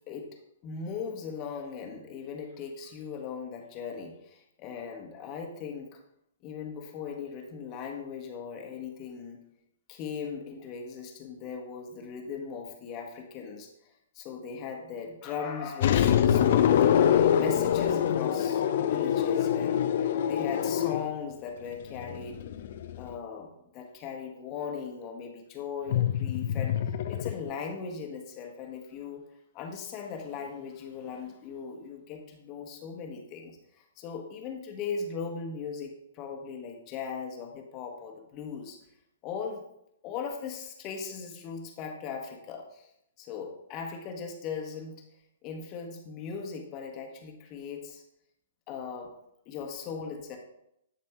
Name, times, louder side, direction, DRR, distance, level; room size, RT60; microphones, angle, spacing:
voice 1, 0.1-0.4 0.6-6.0 6.4-9.4 9.9-19.8 20.3-22.4 22.9-29.3 29.5-38.8 39.2-39.6 40.0-42.9 43.2-45.0 45.4-48.0 48.7-49.1 49.4-50.4, left 6 dB, 30° left, 2 dB, 1.3 m, -39 dB
sound 1, 15.8-21.1 21.9-23.1 25.9-27.5, left 9 dB, 50° left, 0.6 m, -25 dB
11.0 x 4.2 x 4.5 m, 0.79 s
figure-of-eight pair, 115°, 0 cm